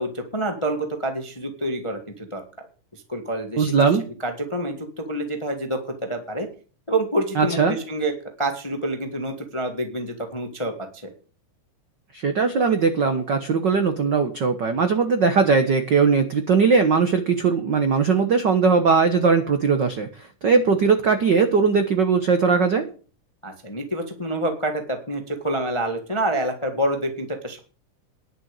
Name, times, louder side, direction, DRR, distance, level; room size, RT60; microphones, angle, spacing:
voice 1, 0.0-2.4 2.9-3.7 4.2-6.5 6.9-10.7 23.4-27.6, right 1 dB, 20° left, 5 dB, 0.7 m, -27 dB
voice 2, 3.6-4.0 7.3-7.7 12.1-22.9, right 5 dB, 70° right, 8 dB, 1.0 m, -19 dB
11.0 x 6.9 x 8.3 m, 0.39 s
omnidirectional pair, 3.8 m